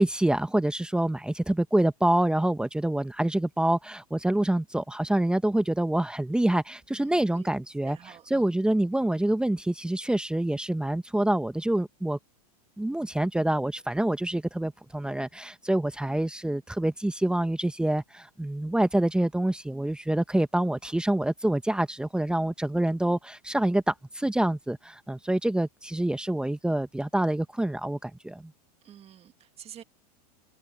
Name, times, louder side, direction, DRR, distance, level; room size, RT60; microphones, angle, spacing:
voice 1, 0.0-8.0 8.3-12.2 12.8-28.5, right 1 dB, 5° right, 1.4 m, -26 dB
voice 2, 7.0-7.5 7.8-8.5 28.8-29.8, right 10 dB, 30° right, 2.0 m, -49 dB
hypercardioid pair, 105°, 20 cm